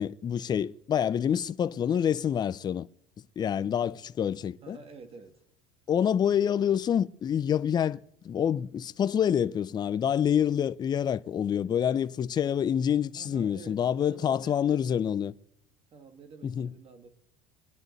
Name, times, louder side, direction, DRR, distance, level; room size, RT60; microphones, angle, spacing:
voice 1, 0.0-2.9 3.4-4.8 5.9-15.3 16.4-16.7, left 9 dB, 25° left, 0.5 m, -27 dB
voice 2, 3.4-3.7 4.6-5.4 13.1-14.9 15.9-17.1, right 5 dB, 35° right, 2.0 m, -49 dB
24.5 x 10.5 x 4.0 m
supercardioid pair, 125°, 17 cm